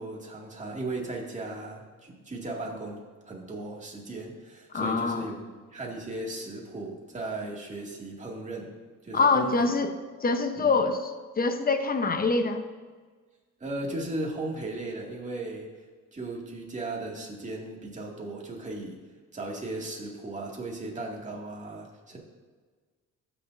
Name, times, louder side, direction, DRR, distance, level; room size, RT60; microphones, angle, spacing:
voice 1, 0.0-8.7 9.0-9.7 10.6-10.7 13.6-15.7 16.1-19.0 19.3-22.2, right 2 dB, 25° right, -2 dB, 2.3 m, -36 dB
voice 2, 4.7-5.3 9.1-9.9 10.2-12.6, left 4 dB, 30° left, 7 dB, 0.9 m, -25 dB
14.5 x 6.7 x 2.7 m, 1.4 s
cardioid pair, 90°, 30 cm